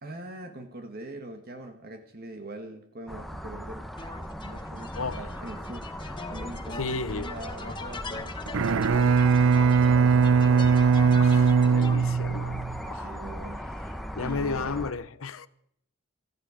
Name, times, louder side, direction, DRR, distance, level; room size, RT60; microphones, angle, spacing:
voice 1, 0.0-3.8 4.4-5.9 6.3-10.9 13.0-13.6 14.2-14.7, right 1 dB, 45° right, 1.5 m, -42 dB
sound 1, 3.1-14.9, equal, ahead, 0.9 m, -38 dB
sound 2, 4.0-12.2, left 3 dB, 25° left, 1.2 m, -40 dB
voice 2, 6.8-7.3 11.2-13.1 14.2-15.5, left 4 dB, 85° left, 0.8 m, -33 dB
Bowed string instrument, 8.5-12.8, right 5 dB, 75° right, 0.5 m, -20 dB
17.5 x 14.5 x 5.0 m
head